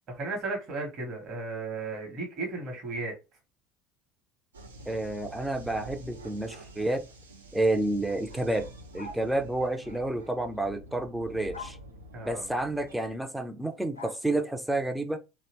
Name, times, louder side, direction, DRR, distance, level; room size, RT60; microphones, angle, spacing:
voice 1, 0.1-3.1 12.1-12.5, right 3 dB, 45° right, 0.9 m, -35 dB
sound 1, 4.5-13.3, right 1 dB, 80° right, 0.4 m, -48 dB
voice 2, 4.9-7.0 7.5-8.7 8.9-11.8 12.3-15.2, right 2 dB, 5° right, 0.3 m, -30 dB
sound 2, 9.0-9.3 11.5-11.8 13.9-14.2, left 3 dB, 85° left, 0.4 m, -42 dB
2.7 x 2.0 x 2.8 m
figure-of-eight pair, 65°, 0 cm